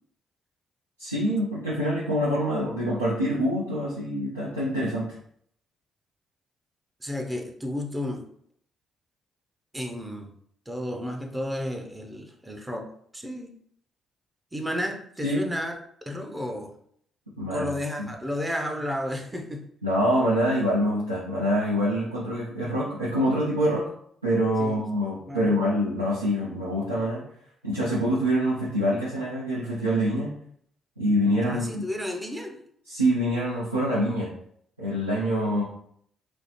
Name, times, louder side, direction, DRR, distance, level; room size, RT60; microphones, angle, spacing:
voice 1, 1.0-5.0 15.2-15.5 17.4-17.7 18.0-18.1 19.8-23.9 24.2-27.2 27.6-30.3 31.0-31.8 32.9-34.3 34.8-35.6, equal, 90° right, -8 dB, 0.4 m, -25 dB
voice 2, 7.0-8.2 9.7-10.3 10.7-12.9 13.1-13.5 14.5-15.7 16.1-16.7 17.5-19.7 24.6-24.8 25.3-25.5 31.4-32.6, left 1 dB, 15° right, 3 dB, 0.6 m, -32 dB
3.0 x 2.0 x 2.8 m, 0.66 s
figure-of-eight pair, 40°, 0 cm